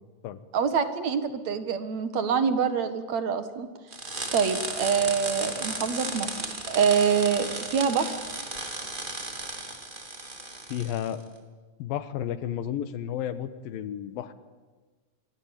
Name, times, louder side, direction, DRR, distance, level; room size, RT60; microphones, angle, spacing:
voice 1, 0.5-3.7 4.3-6.3 6.7-8.1, right 6 dB, 55° right, 10 dB, 2.5 m, -25 dB
sound 1, 3.9-11.1, right 2 dB, 15° right, 2.2 m, -35 dB
voice 2, 10.7-11.2 11.8-14.3, left 10 dB, 80° left, 13 dB, 3.0 m, -32 dB
26.5 x 22.5 x 9.0 m, 1.3 s
omnidirectional pair, 4.1 m